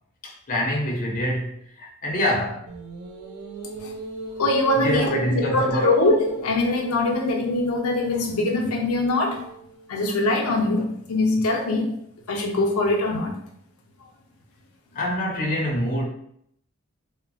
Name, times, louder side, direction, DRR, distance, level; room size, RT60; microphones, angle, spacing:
voice 1, 0.2-2.7 4.7-6.0 14.9-16.1, equal, 40° left, -2 dB, 0.6 m, -25 dB
sound 1, 2.7-10.1, right 4 dB, 80° right, 0.4 m, -38 dB
voice 2, 4.4-9.5 9.9-12.0 12.3-13.4, left 2 dB, 85° left, 0 dB, 0.5 m, -23 dB
3.0 x 2.0 x 2.5 m, 0.69 s
head